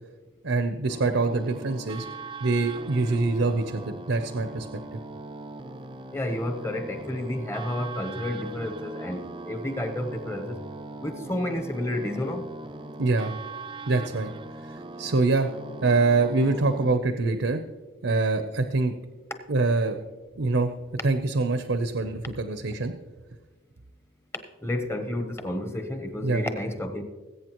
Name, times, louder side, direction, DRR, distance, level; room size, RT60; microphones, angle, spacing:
voice 1, 0.4-2.1 2.4-4.7 4.9-5.0 13.0-13.3 13.9-14.3 15.0-15.5 15.8-17.6 18.0-18.9 19.5-20.0 20.4-20.7 21.0-22.9 26.2-26.4, right 3 dB, 75° right, 0.7 m, -24 dB
sound 1, 0.9-17.0, right 2 dB, 25° right, 0.4 m, -40 dB
voice 2, 6.1-10.6 11.0-12.5 24.6-27.0, left 1 dB, 15° left, 0.8 m, -31 dB
20.5 x 8.4 x 3.0 m
head